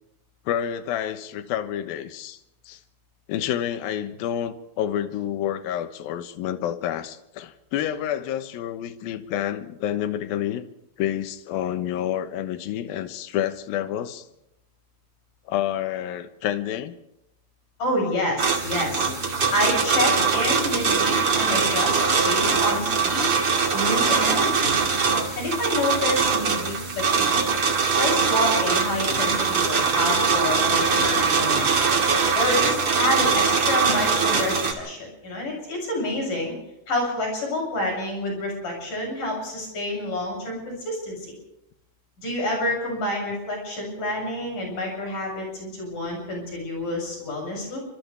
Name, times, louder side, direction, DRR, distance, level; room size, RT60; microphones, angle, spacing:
voice 1, 0.5-2.4 2.7-2.8 3.3-10.7 11.0-14.2 15.5-16.9 19.1-19.2, left 11 dB, 75° left, 10 dB, 2.8 m, -29 dB
voice 2, 17.8-19.1 19.5-23.2 23.7-24.7 25.4-27.5 28.0-31.8 32.4-36.5 36.9-41.3 42.2-47.8, left 1 dB, 55° left, 0 dB, 9.0 m, -28 dB
sound 1, 18.4-34.7, right 5 dB, 40° right, 2.8 m, -22 dB
29.5 x 25.5 x 3.5 m, 0.85 s
omnidirectional pair, 4.4 m